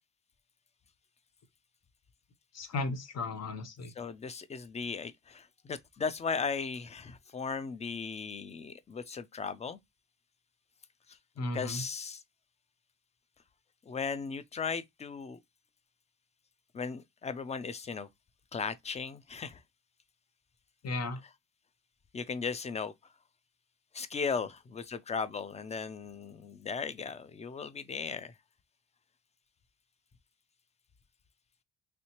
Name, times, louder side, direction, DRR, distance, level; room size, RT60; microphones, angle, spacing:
voice 1, 2.5-3.9 11.4-11.8 20.8-21.2, left 2 dB, 55° left, 0.9 m, -35 dB
voice 2, 4.0-9.8 11.5-12.2 13.9-15.4 16.7-18.1 18.5-19.6 22.1-22.9 23.9-28.3, left 5 dB, 20° left, 0.4 m, -37 dB
3.2 x 2.8 x 2.8 m
cardioid pair, 90°, 30 cm